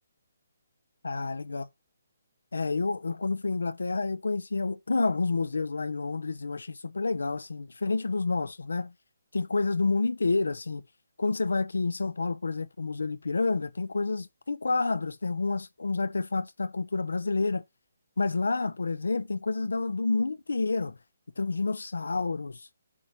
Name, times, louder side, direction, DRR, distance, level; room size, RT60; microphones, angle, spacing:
voice 1, 1.0-1.6 2.5-8.9 9.3-10.8 11.2-17.6 18.2-21.0 21.4-22.7, left 3 dB, 90° left, 0.7 m, -29 dB
8.5 x 3.0 x 5.1 m
hypercardioid pair, 155°, 0 cm